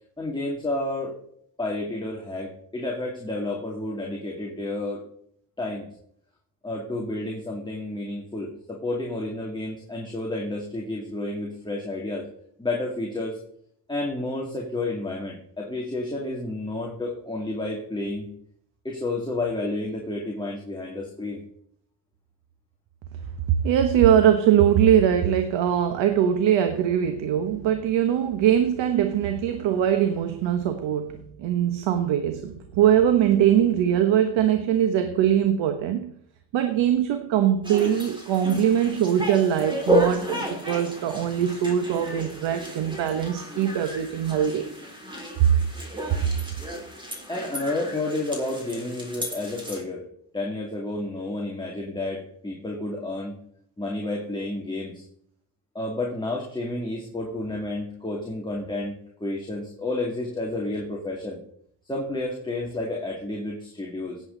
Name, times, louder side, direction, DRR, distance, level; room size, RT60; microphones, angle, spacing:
voice 1, 0.2-1.2 1.6-5.0 5.6-5.9 6.6-12.3 12.6-13.4 13.9-18.3 18.8-21.4 38.9-39.0 47.3-50.0 50.3-53.4 53.8-55.0 55.7-61.4 61.9-64.2, left 2 dB, 10° left, 2.4 m, -30 dB
voice 2, 23.6-36.1 36.5-44.6, right 9 dB, 90° right, 1.3 m, -22 dB
sound 1, 37.6-49.8, right 1 dB, 10° right, 3.8 m, -32 dB
17.5 x 8.0 x 4.0 m
cardioid pair, 115°, 44 cm